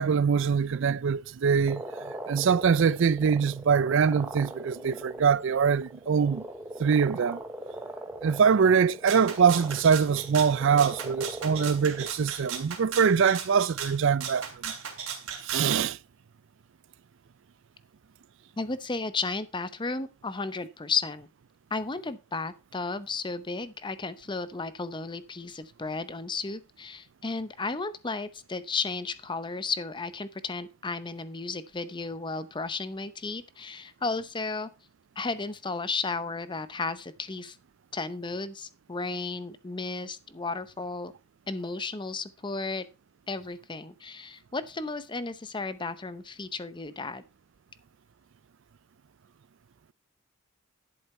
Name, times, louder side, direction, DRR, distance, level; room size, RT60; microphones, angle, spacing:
voice 1, 0.0-1.8 2.3-6.5 6.8-7.4 8.2-14.7 15.4-16.0, right 6 dB, 60° right, 0.4 m, -23 dB
sound 1, 1.7-12.1, right 1 dB, 10° right, 0.9 m, -41 dB
Rattle (instrument), 9.1-15.8, right 7 dB, 85° right, 3.0 m, -37 dB
voice 2, 18.6-21.3 21.7-34.7 35.2-37.6 37.9-41.1 41.5-42.9 43.3-47.2, left 4 dB, 20° left, 0.7 m, -34 dB
11.0 x 7.3 x 4.3 m
head